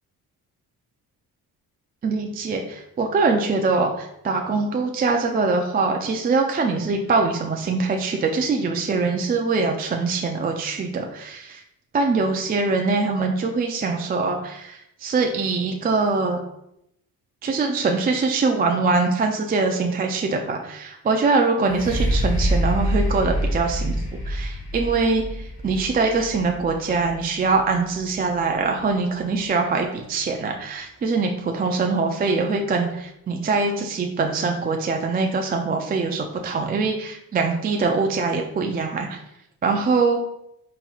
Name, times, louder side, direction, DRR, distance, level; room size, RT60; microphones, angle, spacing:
voice 1, 2.0-11.6 11.9-16.4 17.4-24.0 24.3-39.2 39.6-40.2, right 4 dB, 25° right, 3 dB, 0.3 m, -23 dB
sound 1, 21.6-29.4 30.0-30.1, equal, 90° left, 1.5 m, -27 dB
4.2 x 4.0 x 2.3 m, 0.79 s
cardioid pair, 105°, 37 cm